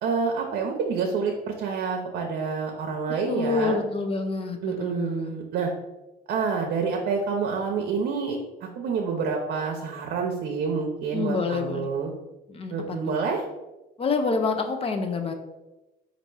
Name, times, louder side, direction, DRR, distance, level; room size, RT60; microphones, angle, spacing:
voice 1, 0.0-3.8 4.6-5.7 6.3-8.4 8.8-12.1 12.7-13.4, right 5 dB, 65° right, 1 dB, 0.6 m, -28 dB
voice 2, 3.3-5.4 11.1-11.9 12.5-12.7 14.0-15.3, left 4 dB, 35° left, 6 dB, 0.6 m, -27 dB
4.1 x 2.6 x 4.6 m, 1.0 s
cardioid pair, 110°, 17 cm